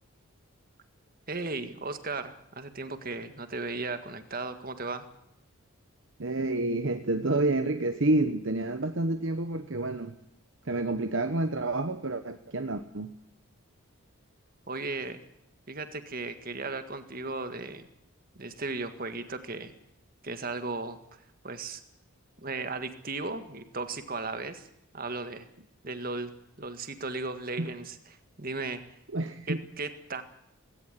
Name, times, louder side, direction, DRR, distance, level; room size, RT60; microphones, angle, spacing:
voice 1, 1.3-5.1 14.7-15.2 15.7-17.9 18.4-19.7 20.2-21.0 21.4-21.8 22.4-24.7 24.9-25.5 25.8-26.3 26.6-28.8 29.5-30.2, right 3 dB, 40° right, 9 dB, 1.8 m, -36 dB
voice 2, 6.2-10.1 10.6-13.1 27.6-27.7 29.1-29.6, right 2 dB, 60° right, 8 dB, 1.1 m, -29 dB
18.5 x 17.0 x 10.0 m, 0.80 s
head